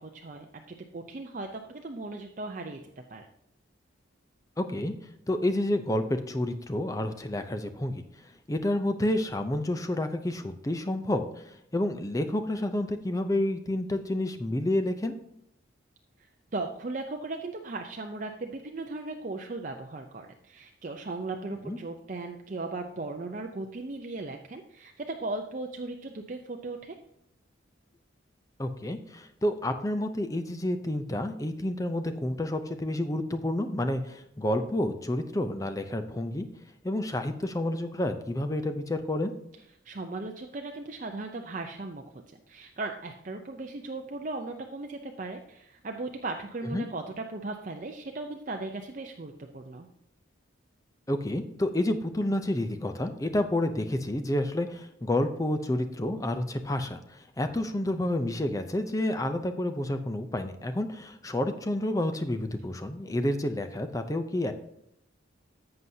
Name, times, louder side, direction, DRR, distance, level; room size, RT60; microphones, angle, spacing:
voice 1, 0.0-2.8 3.1-3.3 16.2-27.0 39.8-42.0 42.3-49.9, right 2 dB, 40° right, 3 dB, 0.6 m, -37 dB
voice 2, 4.6-4.9 5.3-8.0 8.5-15.1 21.5-21.8 28.6-36.5 36.8-39.3 46.7-46.9 51.1-64.5, left 1 dB, 15° left, 7 dB, 0.5 m, -29 dB
11.0 x 7.8 x 2.7 m, 0.76 s
head